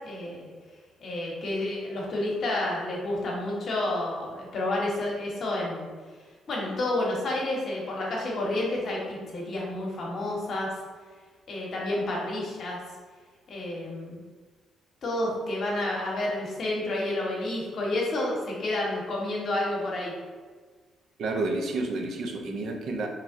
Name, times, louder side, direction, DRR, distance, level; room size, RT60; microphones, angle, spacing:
voice 1, 0.0-0.5 1.0-5.9 6.5-10.7 11.5-12.8 13.5-14.2 15.0-20.1, left 1 dB, 60° left, -3 dB, 0.8 m, -30 dB
voice 2, 21.2-23.1, right 2 dB, 65° right, 3 dB, 0.4 m, -30 dB
3.0 x 2.5 x 2.5 m, 1.4 s
supercardioid pair, 55°, 0 cm